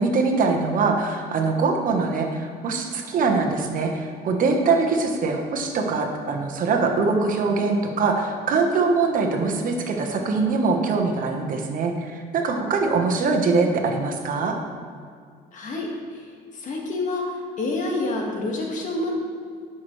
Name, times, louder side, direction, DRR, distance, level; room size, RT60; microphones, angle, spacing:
voice 1, 0.0-14.6, right 4 dB, 55° right, 3 dB, 1.1 m, -23 dB
voice 2, 15.5-16.2 16.5-19.2, left 2 dB, 50° left, -1 dB, 1.7 m, -28 dB
10.5 x 6.0 x 3.2 m, 2.2 s
cardioid pair, 110°, 17 cm